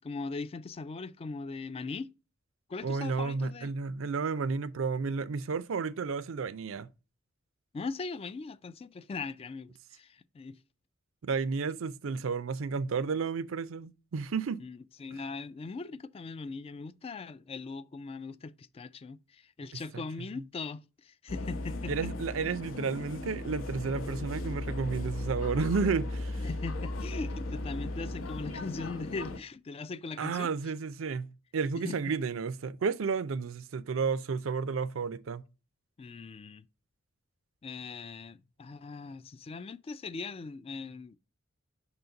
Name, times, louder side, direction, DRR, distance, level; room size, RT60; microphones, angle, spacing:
voice 1, 0.0-2.1 2.7-3.7 7.7-10.6 14.6-22.1 26.4-30.5 31.8-32.0 36.0-36.7 37.6-41.2, left 4 dB, 30° left, 0.3 m, -40 dB
voice 2, 2.8-6.9 11.2-14.6 19.9-20.0 21.9-26.4 30.2-35.4, right 5 dB, 75° right, 0.5 m, -32 dB
sound 1, 21.3-29.4, left 2 dB, 75° left, 0.8 m, -36 dB
5.7 x 3.9 x 5.7 m
head